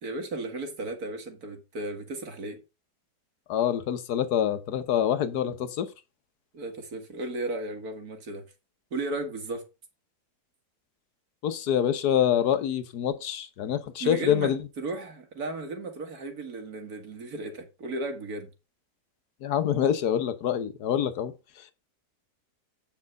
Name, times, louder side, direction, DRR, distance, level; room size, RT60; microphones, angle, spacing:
voice 1, 0.0-2.6 6.5-8.4 8.9-9.6 14.0-18.5, right 2 dB, 60° right, 2.2 m, -35 dB
voice 2, 3.5-5.9 11.4-14.6 19.4-21.3, left 9 dB, 65° left, 1.5 m, -26 dB
8.6 x 5.6 x 5.1 m
omnidirectional pair, 1.9 m